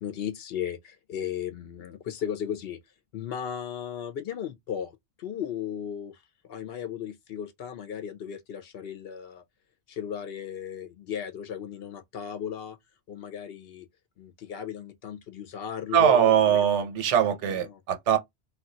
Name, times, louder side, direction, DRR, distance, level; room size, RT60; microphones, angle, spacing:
voice 1, 0.0-2.8 3.1-6.2 6.5-9.4 9.9-12.8 13.1-13.9 14.2-16.7 17.5-17.8, left 9 dB, 65° left, 0.7 m, -36 dB
voice 2, 15.9-18.2, right 9 dB, 85° right, 1.0 m, -22 dB
2.3 x 2.3 x 3.7 m
omnidirectional pair, 1.2 m